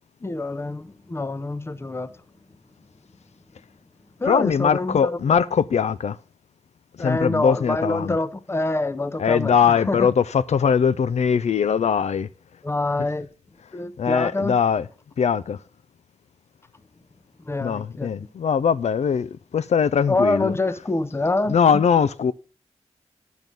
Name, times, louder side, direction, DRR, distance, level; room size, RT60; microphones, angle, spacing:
voice 1, 0.2-2.2 4.2-5.2 7.0-10.1 12.6-13.3 13.7-14.6 17.5-18.3 20.1-21.8, left 2 dB, 20° left, 0.7 m, -26 dB
voice 2, 4.3-6.2 7.0-8.2 9.2-12.3 14.0-14.8 15.2-15.6 17.6-20.5 21.5-22.3, left 7 dB, 75° left, 0.4 m, -21 dB
10.5 x 6.3 x 5.3 m
wide cardioid pair, 110°, 12 cm